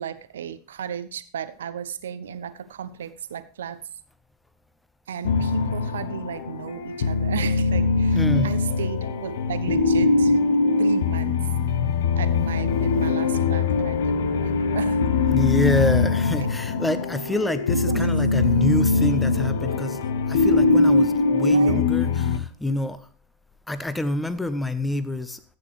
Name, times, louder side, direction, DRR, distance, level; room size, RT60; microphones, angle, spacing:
voice 1, 0.0-3.8 5.1-10.4 10.8-11.5 12.2-15.0 17.9-18.1 21.5-21.8, right 8 dB, 70° right, 0.8 m, -34 dB
sound 1, 5.2-22.4, left 4 dB, 65° left, 0.9 m, -22 dB
voice 2, 8.1-8.5 15.3-20.0 20.3-23.0 23.7-25.4, left 1 dB, 5° left, 1.0 m, -27 dB
13.5 x 8.9 x 3.3 m
figure-of-eight pair, 85°, 0 cm